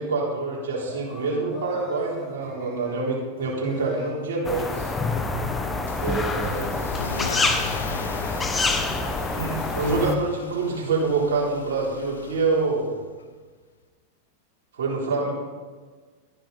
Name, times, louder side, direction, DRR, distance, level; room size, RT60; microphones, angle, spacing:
voice 1, 0.0-4.9 5.9-6.7 9.4-12.9 14.7-15.3, right 3 dB, 70° right, -4 dB, 3.5 m, -26 dB
sound 1, 0.8-10.9, left 1 dB, 35° left, 4.0 m, -44 dB
sound 2, 4.4-10.1, left 3 dB, 15° left, 1.2 m, -26 dB
Car / Engine starting / Accelerating revving vroom, 5.9-13.0, left 5 dB, 85° left, 0.8 m, -38 dB
12.5 x 10.5 x 4.1 m, 1.5 s
hypercardioid pair, 100°, 0 cm